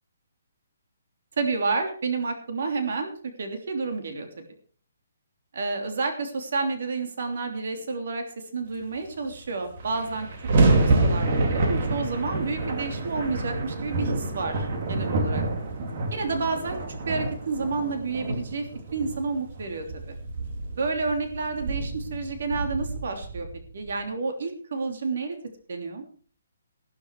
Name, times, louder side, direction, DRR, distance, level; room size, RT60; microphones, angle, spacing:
voice 1, 1.4-3.1 3.4-4.3 5.5-8.2 8.5-10.3 10.6-15.4 16.1-20.2 20.8-23.5 23.7-25.4 25.7-26.0, right 4 dB, 55° right, 5 dB, 3.2 m, -30 dB
sound 1, 9.3-9.4 9.6-23.9, right 2 dB, 35° right, 2.7 m, -27 dB
14.5 x 13.0 x 4.9 m, 0.44 s
hypercardioid pair, 175°, 0 cm